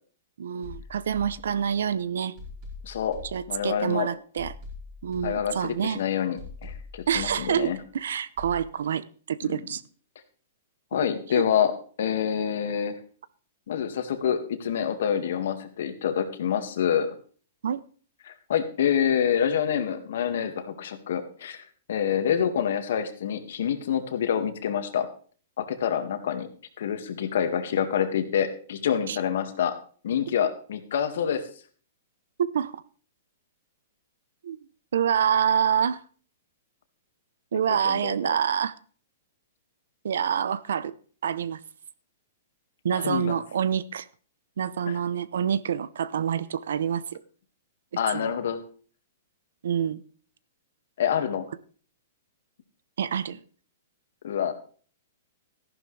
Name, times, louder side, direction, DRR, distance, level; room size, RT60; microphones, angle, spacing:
voice 1, 0.4-2.3 3.3-4.5 5.0-6.0 7.1-9.8 11.3-11.4 17.6-17.8 29.1-29.2 32.4-32.8 34.4-34.6 34.9-36.0 37.5-38.7 40.0-40.9 41.2-41.6 42.8-44.1 44.6-47.0 48.1-48.3 49.6-50.0 53.0-53.4, right 8 dB, 80° right, 0.8 m, -27 dB
sound 1, 0.6-1.9 2.4-3.9 4.4-5.9 6.4-7.9 8.4-8.6, left 3 dB, 35° right, 4.7 m, -43 dB
voice 2, 2.8-3.2 3.5-4.1 5.2-7.8 9.4-9.6 10.9-11.7 12.0-13.0 13.7-17.1 18.3-21.6 21.9-25.1 25.6-26.5 26.8-29.8 30.0-31.4 37.5-38.3 42.9-43.3 44.9-45.0 48.0-48.6 51.0-51.5 54.2-54.5, left 8 dB, 65° left, 1.9 m, -27 dB
14.0 x 11.5 x 3.3 m
hypercardioid pair, 165°, 0 cm